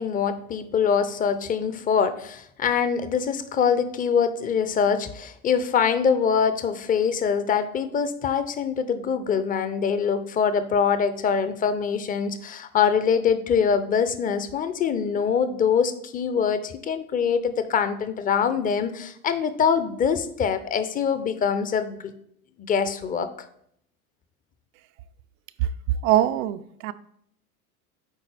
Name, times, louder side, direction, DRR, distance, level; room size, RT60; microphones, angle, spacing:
voice 1, 0.0-22.1 22.6-23.3, left 6 dB, 20° left, 11 dB, 0.5 m, -24 dB
voice 2, 26.0-26.9, right 12 dB, 60° right, 12 dB, 0.5 m, -22 dB
9.0 x 3.9 x 3.3 m, 0.70 s
hypercardioid pair, 85°, 45 cm